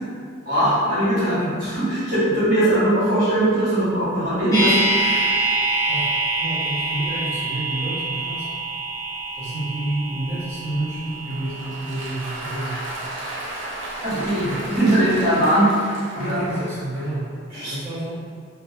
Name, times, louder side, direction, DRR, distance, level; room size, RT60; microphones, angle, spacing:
voice 1, 0.4-5.4 14.0-15.7 16.1-16.4 17.5-17.7, right 1 dB, 50° right, -12 dB, 1.4 m, -20 dB
sound 1, 4.5-14.6 14.8-14.9, right 2 dB, 20° left, 0.5 m, -26 dB
voice 2, 6.4-8.5 9.3-12.8 14.4-14.8 16.1-17.3 17.7-18.1, right 1 dB, 35° right, -17 dB, 0.9 m, -29 dB
Applause, 11.1-17.3, right 1 dB, 65° right, 0.5 m, -34 dB
2.5 x 2.3 x 2.6 m, 2.1 s
head